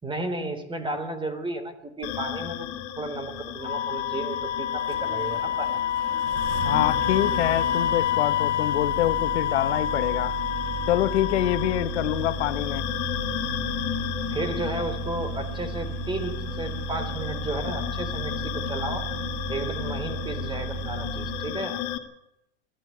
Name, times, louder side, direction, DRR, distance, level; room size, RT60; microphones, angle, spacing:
voice 1, 0.0-2.7 3.0-5.8 14.3-18.3 18.7-19.1 19.5-21.8, right 2 dB, 15° right, 3.5 m, -33 dB
sound 1, 2.0-22.0, left 11 dB, 55° left, 2.7 m, -35 dB
Engine starting, 3.2-21.6, right 3 dB, 40° right, 6.3 m, -35 dB
Wind instrument woodwind instrument, 3.6-11.9, left 9 dB, 90° left, 1.8 m, -27 dB
voice 2, 6.6-10.4 10.9-12.8, left 14 dB, 70° left, 1.2 m, -25 dB
22.0 x 14.0 x 9.3 m
hypercardioid pair, 110°, 34 cm